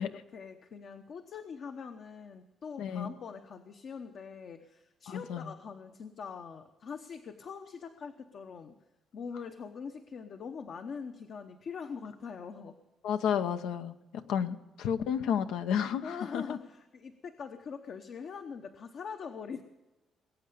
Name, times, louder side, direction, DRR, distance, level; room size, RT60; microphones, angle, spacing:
voice 1, 0.0-8.7 9.1-12.8 16.0-19.6, left 6 dB, 60° left, 6 dB, 1.0 m, -43 dB
voice 2, 2.8-3.1 5.1-5.5 13.0-16.6, left 8 dB, 90° left, 9 dB, 0.8 m, -32 dB
21.5 x 8.6 x 6.8 m, 1.1 s
cardioid pair, 90°, 0 cm